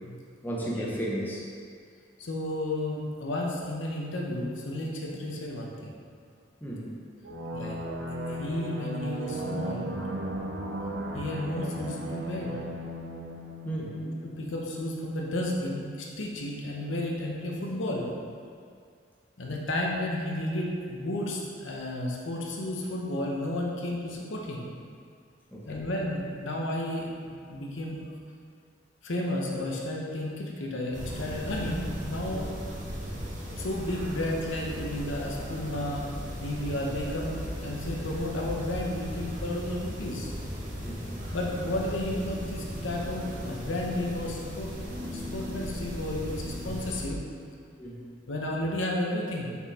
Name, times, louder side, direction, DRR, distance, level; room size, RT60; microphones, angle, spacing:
voice 1, 0.4-1.5 6.6-7.0 13.6-14.0 25.5-25.9 40.8-41.1 47.8-48.0, right 1 dB, 10° left, -5 dB, 0.9 m, -34 dB
voice 2, 2.2-5.9 7.5-7.8 8.3-10.0 11.1-12.6 14.0-18.1 19.4-24.7 25.7-28.0 29.0-32.5 33.6-36.1 36.4-40.3 41.3-44.7 45.1-47.2 48.3-49.6, left 1 dB, 90° left, -2 dB, 0.9 m, -32 dB
sound 1, 7.2-14.6, right 1 dB, 65° right, 0.6 m, -36 dB
sound 2, 30.9-47.1, equal, 45° right, 1.3 m, -37 dB
5.6 x 4.5 x 4.2 m, 2.2 s
head